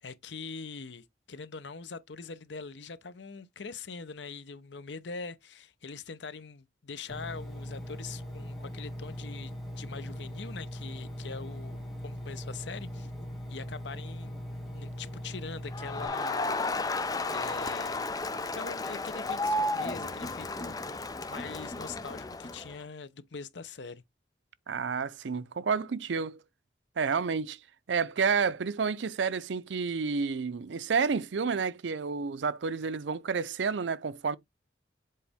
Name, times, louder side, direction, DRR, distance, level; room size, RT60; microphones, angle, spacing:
voice 1, 0.0-11.8 12.0-13.1 13.5-14.4 14.7-17.0 17.3-18.1 18.5-24.0, left 4 dB, 80° left, 0.8 m, -43 dB
Engine, 7.1-16.1, equal, ahead, 2.2 m, -40 dB
Crowd, 15.7-22.8, left 2 dB, 20° left, 0.5 m, -33 dB
voice 2, 24.7-26.4 27.0-27.6 27.9-34.4, right 5 dB, 90° right, 0.5 m, -30 dB
7.6 x 4.0 x 3.5 m
head